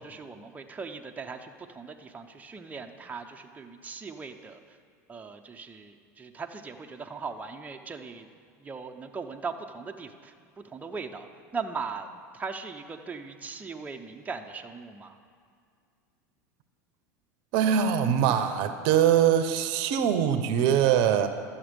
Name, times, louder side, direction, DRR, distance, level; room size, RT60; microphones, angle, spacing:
voice 1, 0.0-4.8 5.1-8.3 8.6-12.1 12.3-15.2, right 5 dB, 15° right, 4 dB, 0.7 m, -39 dB
voice 2, 17.5-21.3, right 9 dB, 60° right, 9 dB, 0.7 m, -23 dB
12.5 x 7.2 x 5.2 m, 2.2 s
hypercardioid pair, 90°, 10 cm